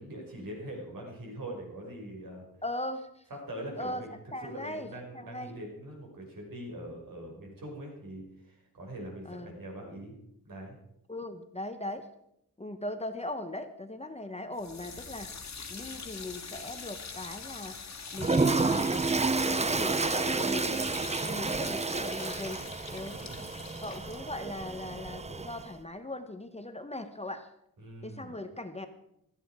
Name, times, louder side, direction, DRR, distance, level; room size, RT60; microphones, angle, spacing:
voice 1, 0.0-2.5 3.5-10.2 10.4-10.8 23.1-23.5 27.8-28.4, right 1 dB, 65° right, 0 dB, 5.6 m, -43 dB
voice 2, 2.6-3.2 3.8-5.5 9.3-9.5 11.1-12.1 12.6-20.8 21.2-22.6 22.9-23.2 23.8-27.5 28.0-28.9, left 1 dB, 20° left, 8 dB, 0.9 m, -39 dB
sound 1, 14.5-25.6, left 5 dB, 50° left, 1.8 m, -44 dB
Toilet flush, 18.2-25.7, right 3 dB, 20° right, 0.5 m, -30 dB
17.0 x 13.5 x 4.8 m, 0.78 s
wide cardioid pair, 150°, 36 cm